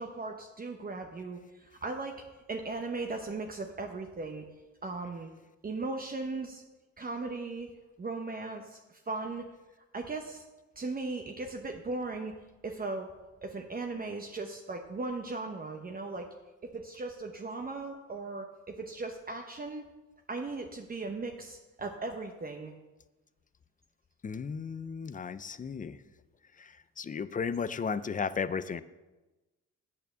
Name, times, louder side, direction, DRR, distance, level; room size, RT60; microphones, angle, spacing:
voice 1, 0.0-4.4 4.8-5.3 5.6-6.6 7.0-7.7 8.0-9.5 9.9-10.4 10.8-12.4 12.6-13.1 13.4-16.3 16.6-19.8 20.3-22.7, right 3 dB, 30° right, 3 dB, 0.9 m, -37 dB
voice 2, 24.2-26.0 26.6-28.8, left 6 dB, 25° left, 15 dB, 0.5 m, -34 dB
8.5 x 6.8 x 6.7 m, 1.1 s
cardioid pair, 90°, 30 cm